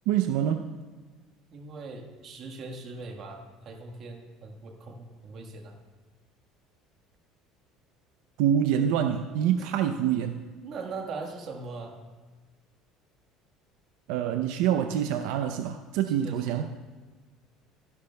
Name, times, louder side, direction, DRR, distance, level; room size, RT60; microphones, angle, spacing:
voice 1, 0.1-0.6 8.4-10.4 14.1-16.7, right 9 dB, 70° right, 7 dB, 0.5 m, -26 dB
voice 2, 1.5-5.8 9.6-9.7 10.6-12.0 16.1-16.7, right 3 dB, 35° right, 2 dB, 1.4 m, -40 dB
25.0 x 11.0 x 2.2 m, 1.4 s
cardioid pair, 175°, 0 cm